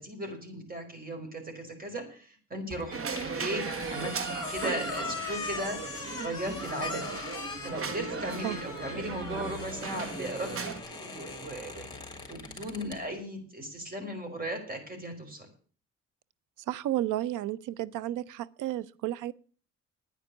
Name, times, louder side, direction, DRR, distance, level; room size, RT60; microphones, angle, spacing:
voice 1, 0.0-3.6 3.9-6.0 6.2-7.2 7.6-11.9 12.3-15.5, equal, 30° right, 5.1 m, -37 dB
sound 1, 2.7-13.0, left 3 dB, 15° left, 3.8 m, -40 dB
sound 2, 2.9-10.8, right 5 dB, 45° right, 1.4 m, -37 dB
voice 2, 16.7-19.3, right 13 dB, 85° right, 0.7 m, -32 dB
9.9 x 9.8 x 8.2 m
cardioid pair, 90°, 30 cm